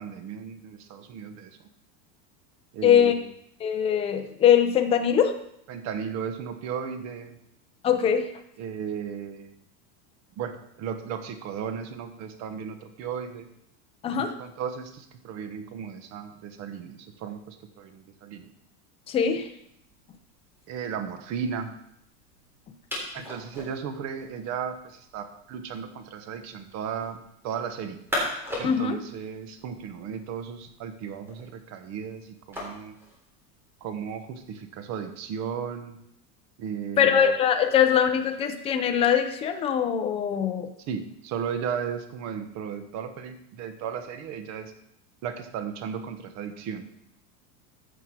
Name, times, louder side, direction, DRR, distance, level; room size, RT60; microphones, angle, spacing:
voice 1, 0.0-1.6 2.7-3.2 5.7-7.4 8.6-9.5 10.4-13.5 14.4-18.5 20.7-21.7 23.1-28.0 28.6-32.9 33.8-36.0 36.6-37.3 40.9-44.7 45.2-46.8, right 7 dB, 35° right, 8 dB, 1.2 m, -35 dB
voice 2, 2.8-3.1 3.6-5.3 7.8-8.3 14.0-14.3 19.1-19.5 28.6-29.0 37.0-40.7, left 8 dB, 15° left, 6 dB, 0.4 m, -22 dB
sound 1, 19.2-34.7, left 1 dB, 5° right, 3.4 m, -41 dB
14.5 x 6.1 x 4.7 m, 0.75 s
supercardioid pair, 165°, 47 cm